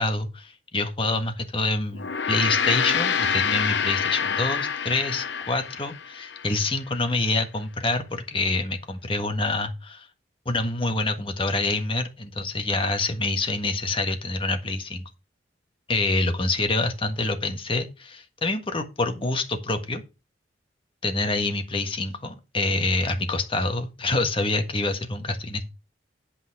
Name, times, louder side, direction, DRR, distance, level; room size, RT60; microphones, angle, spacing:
voice 1, 0.0-10.1 10.4-15.0 15.9-20.0 21.0-25.6, left 2 dB, 30° left, 1.5 m, -26 dB
Gong, 1.9-6.5, left 7 dB, 70° left, 0.7 m, -26 dB
10.5 x 5.4 x 4.9 m
head